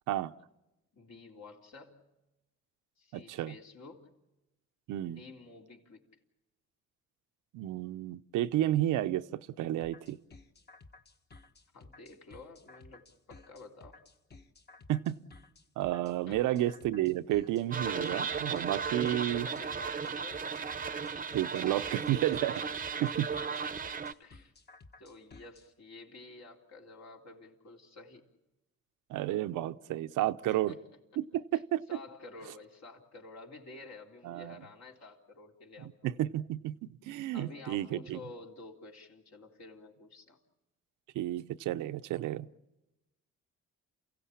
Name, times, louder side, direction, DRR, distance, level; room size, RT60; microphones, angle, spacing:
voice 1, 0.9-2.1 3.0-4.2 5.0-6.0 11.7-14.0 16.3-16.6 19.0-20.6 23.0-23.3 24.2-24.5 25.0-28.3 30.4-30.8 31.5-31.6 31.9-36.1 37.3-40.4, left 3 dB, 60° left, 1 dB, 3.7 m, -50 dB
voice 2, 3.1-3.5 4.9-5.2 7.5-10.2 14.9-15.2 15.8-19.5 21.3-22.6 23.0-23.3 29.1-30.7 31.2-31.8 34.2-34.6 35.8-38.2 41.1-42.5, right 13 dB, 90° right, 11 dB, 0.7 m, -31 dB
sound 1, 9.8-25.7, left 3 dB, 35° left, 1.5 m, -55 dB
sound 2, 17.7-24.1, right 5 dB, 30° right, 0.8 m, -35 dB
29.0 x 16.5 x 8.6 m, 1.0 s
cardioid pair, 90°, 30 cm